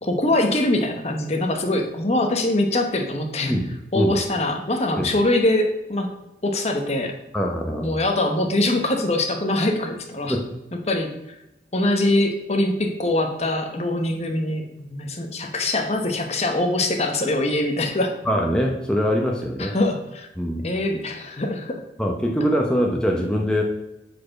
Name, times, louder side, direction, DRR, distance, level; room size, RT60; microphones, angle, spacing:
voice 1, 0.0-3.5 3.9-6.1 6.4-7.1 7.8-10.3 10.9-11.3 11.7-18.1 19.6-20.3 20.6-21.8, left 1 dB, 35° left, 4 dB, 1.0 m, -23 dB
voice 2, 7.3-8.0 10.3-10.5 18.3-19.7 20.4-20.7 22.0-23.6, equal, 5° left, 0 dB, 0.8 m, -23 dB
8.3 x 4.4 x 5.8 m, 0.92 s
head